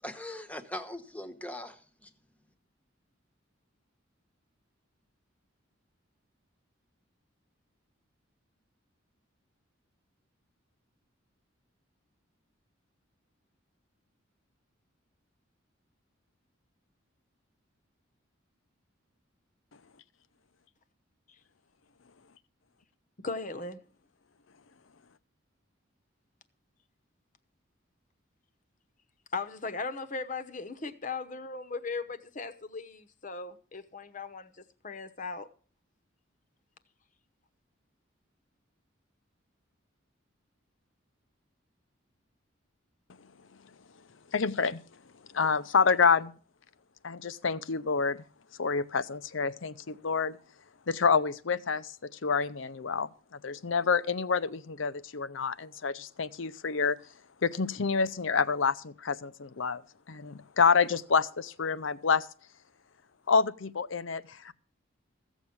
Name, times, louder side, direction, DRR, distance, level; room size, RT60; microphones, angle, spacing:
voice 1, 0.0-2.1, left 1 dB, 5° left, 1.0 m, -41 dB
voice 2, 23.2-23.8 29.3-35.5, left 4 dB, 40° left, 1.0 m, -38 dB
voice 3, 44.3-44.8 45.3-46.3 47.0-48.2 48.6-50.4 50.9-57.0 57.4-59.8 60.1-62.3 63.3-64.5, left 5 dB, 75° left, 0.7 m, -28 dB
15.5 x 7.2 x 6.0 m
head